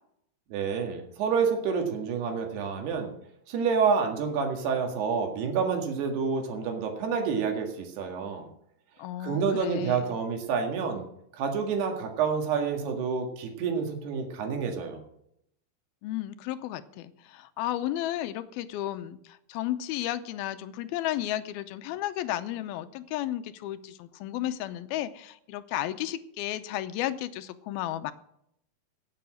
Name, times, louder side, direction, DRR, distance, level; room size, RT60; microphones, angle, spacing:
voice 1, 0.5-3.1 3.5-8.5 9.2-11.0 11.3-15.0, right 6 dB, 90° right, 3 dB, 3.9 m, -28 dB
voice 2, 9.0-10.1 16.0-28.1, left 13 dB, 80° left, 12 dB, 2.5 m, -33 dB
17.5 x 7.1 x 6.3 m, 0.75 s
omnidirectional pair, 4.5 m